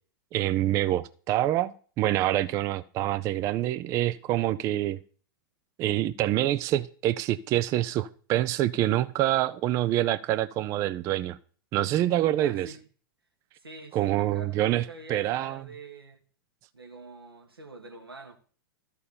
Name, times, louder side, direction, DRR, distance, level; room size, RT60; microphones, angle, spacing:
voice 1, 0.3-5.0 5.8-11.4 11.7-12.7 13.9-15.6, right 13 dB, 25° right, 0.3 m, -26 dB
voice 2, 12.3-12.8 13.6-16.2 16.7-18.4, right 2 dB, 85° right, 1.7 m, -46 dB
13.0 x 4.5 x 6.8 m
figure-of-eight pair, 100°, 12 cm